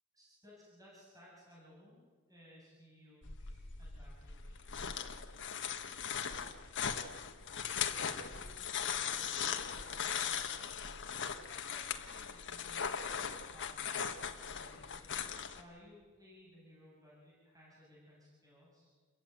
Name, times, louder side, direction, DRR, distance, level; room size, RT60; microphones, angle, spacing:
voice 1, 0.1-4.7 7.9-19.1, left 1 dB, 15° right, -6 dB, 7.5 m, -61 dB
sound 1, 3.2-15.6, left 7 dB, 60° left, 1.5 m, -39 dB
29.0 x 15.0 x 9.4 m, 1.5 s
head